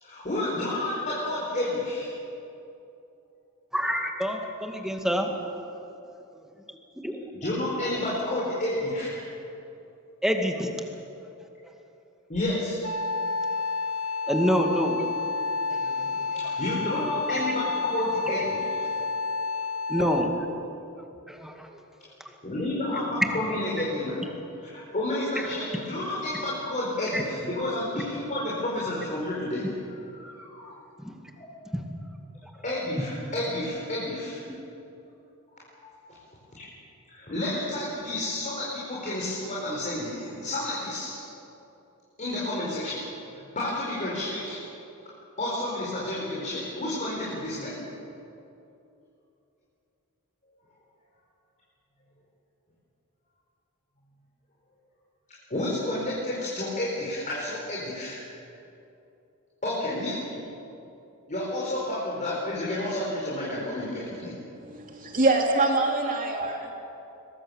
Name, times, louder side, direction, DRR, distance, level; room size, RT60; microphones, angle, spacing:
voice 1, 0.0-2.1 7.3-9.2 12.3-12.8 16.3-18.9 22.4-24.3 24.6-29.7 30.6-30.7 31.4-31.5 32.6-34.4 35.8-35.9 37.1-41.2 42.2-43.1 43.5-44.6 45.4-47.8 55.5-58.2 59.6-60.4 61.3-64.3, left 1 dB, 35° left, -6 dB, 4.8 m, -30 dB
voice 2, 3.7-5.6 7.0-7.3 10.2-10.7 14.3-15.1 15.8-16.3 17.5-17.6 19.9-20.3 21.3-21.7 23.3-23.4 27.1-27.2 31.0-31.2 31.7-31.8 34.5-34.6, equal, ahead, 3 dB, 2.1 m, -27 dB
Wind instrument woodwind instrument, 12.8-20.5, left 3 dB, 80° left, 1.8 m, -30 dB
voice 3, 64.6-66.7, right 2 dB, 40° right, 1 dB, 3.0 m, -25 dB
22.5 x 21.5 x 7.3 m, 2.8 s
head